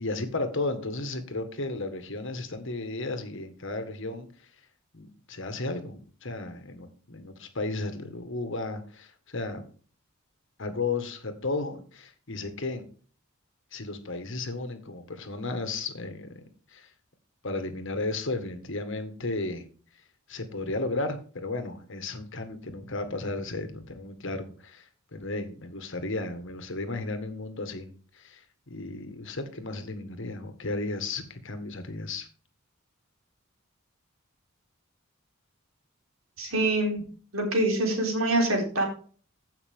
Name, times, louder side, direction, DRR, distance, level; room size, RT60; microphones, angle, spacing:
voice 1, 0.0-4.5 4.9-9.6 10.6-12.9 13.7-16.4 16.7-16.9 17.4-19.6 20.3-32.3, left 2 dB, 65° left, 8 dB, 1.6 m, -34 dB
voice 2, 36.4-37.0 37.3-38.8, right 1 dB, 75° right, 2 dB, 3.6 m, -25 dB
15.5 x 5.8 x 3.6 m, 0.42 s
head